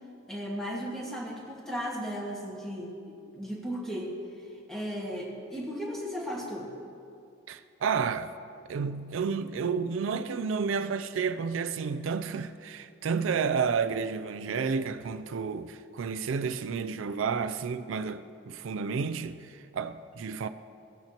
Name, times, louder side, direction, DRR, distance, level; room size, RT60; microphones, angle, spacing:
voice 1, 0.3-4.2 4.7-6.7, equal, ahead, 1.5 m, -36 dB
voice 2, 7.5-8.3 8.7-20.5, right 5 dB, 85° right, 0.4 m, -31 dB
17.0 x 8.8 x 2.9 m
head